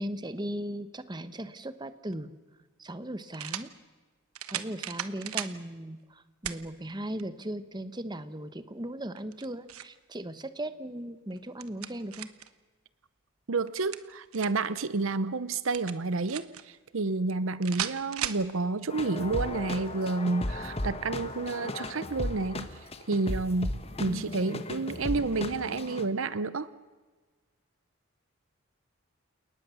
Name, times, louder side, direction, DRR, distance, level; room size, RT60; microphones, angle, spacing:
voice 1, 0.0-2.3 2.8-3.7 4.5-12.3, right 1 dB, 20° right, 12 dB, 1.1 m, -37 dB
sound 1, 2.1-2.2 3.3-3.7 4.3-5.6 6.4-6.6 7.2-7.3 9.2-10.0 11.3-12.5 13.7-14.7 15.7-16.6 17.6-18.4, right 10 dB, 85° right, 1.2 m, -36 dB
voice 2, 13.5-22.7 23.1-26.7, right 3 dB, 65° right, 16 dB, 0.8 m, -30 dB
sound 2, 18.9-26.1, left 1 dB, 30° left, 1.5 m, -36 dB
30.0 x 19.0 x 7.1 m, 1.3 s
head